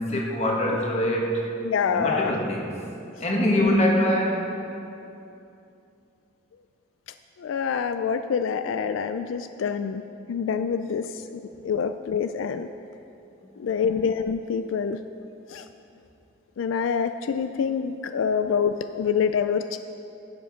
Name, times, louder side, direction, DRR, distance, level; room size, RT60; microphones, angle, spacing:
voice 1, 0.0-1.5 1.9-2.7 3.2-4.5, equal, 35° left, -1 dB, 1.4 m, -23 dB
voice 2, 1.6-2.3 3.6-3.8 7.4-10.0 10.3-12.7 13.6-15.0 15.5-15.6 16.6-19.8, left 6 dB, 90° left, 9 dB, 0.3 m, -26 dB
11.5 x 7.8 x 5.0 m, 2.7 s
head